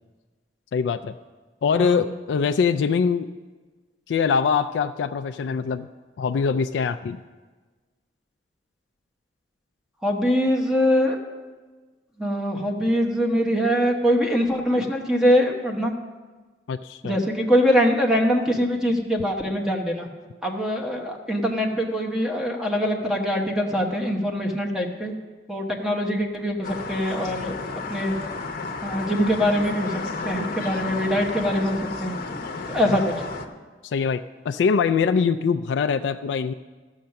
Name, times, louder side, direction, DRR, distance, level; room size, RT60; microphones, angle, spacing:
voice 1, 0.7-1.1 1.6-3.3 4.1-5.9 6.2-7.2 16.7-17.2 33.8-34.2 34.4-36.5, left 6 dB, 75° left, 8 dB, 0.3 m, -23 dB
voice 2, 1.7-2.1 10.0-11.2 12.2-15.9 17.0-20.1 20.4-25.1 25.5-28.2 28.8-32.1 32.7-33.1, equal, 5° right, 0 dB, 1.0 m, -23 dB
sound 1, 26.6-33.5, left 3 dB, 55° left, 0.8 m, -32 dB
13.5 x 6.4 x 5.8 m, 1.3 s
head